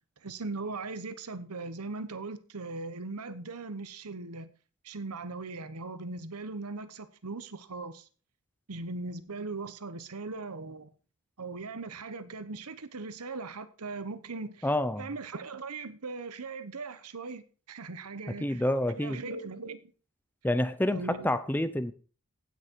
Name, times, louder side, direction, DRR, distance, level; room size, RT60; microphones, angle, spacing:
voice 1, 0.2-4.5 4.8-8.1 8.7-10.9 11.4-14.7 15.0-18.6 19.0-19.9 20.9-21.3, right 3 dB, 90° right, 1.0 m, -39 dB
voice 2, 14.6-15.1 18.4-19.2 20.4-21.9, left 1 dB, 10° left, 0.6 m, -28 dB
16.0 x 6.4 x 4.5 m
head